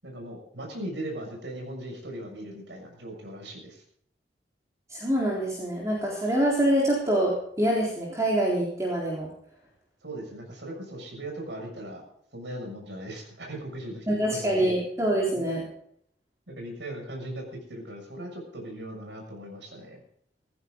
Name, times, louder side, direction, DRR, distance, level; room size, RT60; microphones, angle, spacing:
voice 1, 0.0-3.8 10.0-12.0 12.3-14.7 15.3-15.4 16.5-17.4 17.7-20.0, right 1 dB, 85° right, 1 dB, 6.6 m, -38 dB
voice 2, 4.9-7.3 7.6-9.3 14.1-15.6, right 1 dB, 20° right, -3 dB, 3.8 m, -25 dB
17.5 x 14.5 x 3.9 m, 0.67 s
head